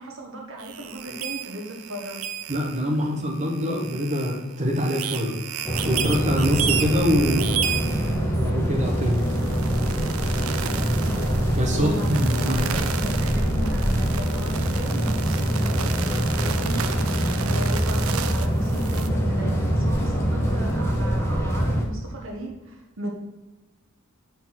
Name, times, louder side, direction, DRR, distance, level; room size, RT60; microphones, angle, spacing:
voice 1, 0.0-2.3 8.0-8.2 11.7-23.1, right 1 dB, 60° right, 1 dB, 1.1 m, -36 dB
sound 1, 0.6-19.1, right 8 dB, 80° right, 0.5 m, -33 dB
voice 2, 2.5-5.4 5.8-7.6 8.4-9.2 11.5-12.6, equal, 35° right, -2 dB, 1.2 m, -24 dB
sound 2, 5.6-21.8, equal, 10° left, 1.0 m, -24 dB
6.5 x 4.0 x 6.0 m, 1.1 s
head